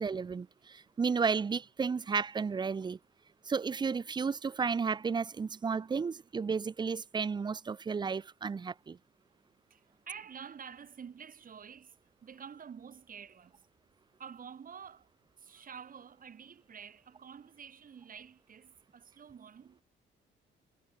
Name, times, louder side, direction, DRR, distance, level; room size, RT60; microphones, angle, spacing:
voice 1, 0.0-3.0 3.5-9.0, right 5 dB, 20° right, 0.4 m, -33 dB
voice 2, 9.7-12.0 12.2-13.7 14.2-15.1 15.4-19.8, right 7 dB, 45° right, 2.0 m, -49 dB
cardioid pair, 90°, 20 cm